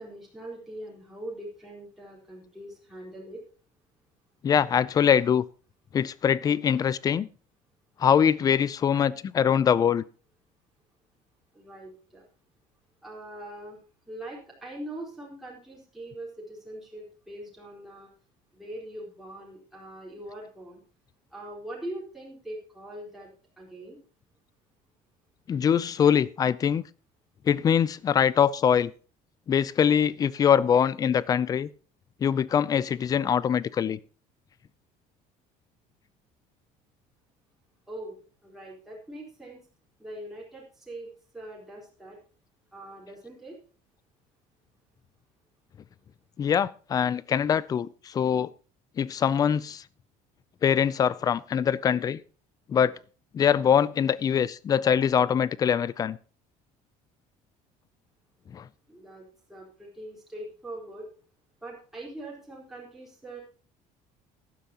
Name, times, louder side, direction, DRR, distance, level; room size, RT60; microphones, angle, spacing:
voice 1, 0.0-3.4 11.5-12.2 13.0-13.8 14.1-18.1 18.5-20.8 21.3-23.3 23.6-24.0 37.9-38.1 38.4-39.6 40.0-42.2 42.7-43.6 58.9-61.1 61.6-63.4, right 1 dB, ahead, 4.3 m, -42 dB
voice 2, 4.4-5.4 5.9-7.3 8.0-10.0 25.5-26.8 27.5-28.9 29.5-31.7 32.2-34.0 46.4-48.5 49.0-49.8 50.6-52.2 52.7-52.9 53.3-56.2 58.5-58.6, left 8 dB, 25° left, 0.5 m, -23 dB
15.0 x 11.5 x 2.9 m
cardioid pair, 165°, 15 cm